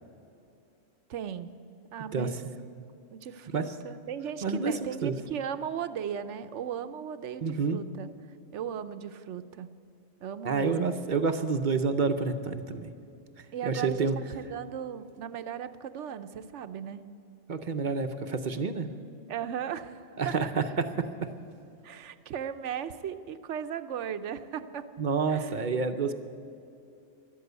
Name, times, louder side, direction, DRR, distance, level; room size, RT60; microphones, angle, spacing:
voice 1, 1.1-1.5 1.9-2.4 3.1-8.1 8.5-9.7 10.2-10.9 13.5-17.0 19.3-20.5 21.8-24.9 25.3-25.6, right 8 dB, 75° right, 11 dB, 1.0 m, -37 dB
voice 2, 4.4-5.2 7.4-7.8 10.4-12.9 13.6-14.2 17.5-18.9 20.2-21.3 25.0-26.1, right 4 dB, 45° right, 8 dB, 0.7 m, -29 dB
13.5 x 12.0 x 8.0 m, 2.7 s
omnidirectional pair, 1.3 m